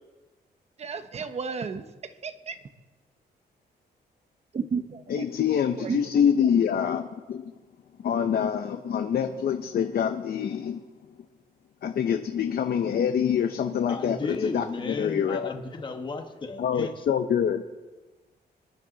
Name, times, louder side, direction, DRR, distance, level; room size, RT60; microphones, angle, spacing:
voice 1, 0.8-1.9 2.2-2.6 4.5-5.3 5.8-6.1, right 5 dB, 40° right, 10 dB, 1.0 m, -32 dB
voice 2, 5.1-7.5 8.0-10.8 11.8-15.5 16.6-17.6, left 8 dB, 60° left, 6 dB, 0.8 m, -26 dB
voice 3, 13.9-17.1, left 3 dB, 25° left, 4 dB, 1.2 m, -34 dB
25.5 x 10.5 x 4.0 m, 1.2 s
wide cardioid pair, 140°, 17 cm